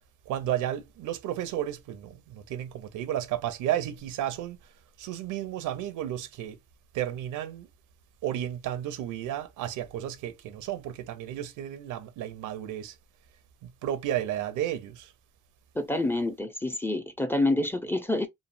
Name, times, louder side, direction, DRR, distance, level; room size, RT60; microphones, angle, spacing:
voice 1, 0.3-4.6 5.0-6.6 6.9-7.7 8.2-13.0 13.6-15.1, right 11 dB, 85° right, 0.6 m, -32 dB
voice 2, 15.8-18.3, left 2 dB, 10° left, 0.4 m, -27 dB
3.1 x 2.1 x 2.5 m
cardioid pair, 90°, 30 cm